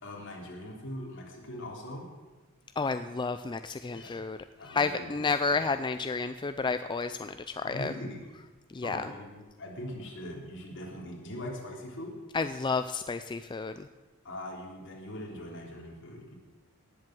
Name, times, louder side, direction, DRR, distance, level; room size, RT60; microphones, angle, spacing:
voice 1, 0.0-2.1 3.9-4.2 4.6-5.2 5.5-5.6 7.6-8.2 8.8-12.1 14.2-16.3, left 1 dB, 60° left, -1 dB, 3.5 m, -41 dB
voice 2, 2.8-4.4 4.7-7.9 8.7-9.1 12.3-13.9, left 4 dB, 20° left, 10 dB, 0.4 m, -31 dB
18.5 x 7.6 x 7.6 m, 1.2 s
head